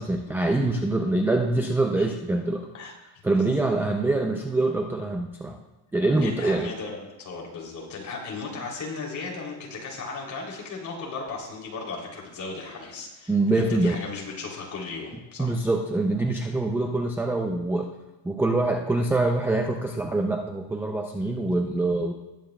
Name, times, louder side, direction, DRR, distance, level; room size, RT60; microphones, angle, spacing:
voice 1, 0.0-2.7 3.2-5.6 5.9-6.7 13.3-14.0 15.4-17.9 18.2-22.1, right 2 dB, 5° right, 3 dB, 0.4 m, -24 dB
voice 2, 3.3-3.7 6.2-15.5, left 4 dB, 40° left, -1 dB, 3.2 m, -36 dB
19.0 x 9.0 x 2.3 m, 1.0 s
cardioid pair, 140°, 46 cm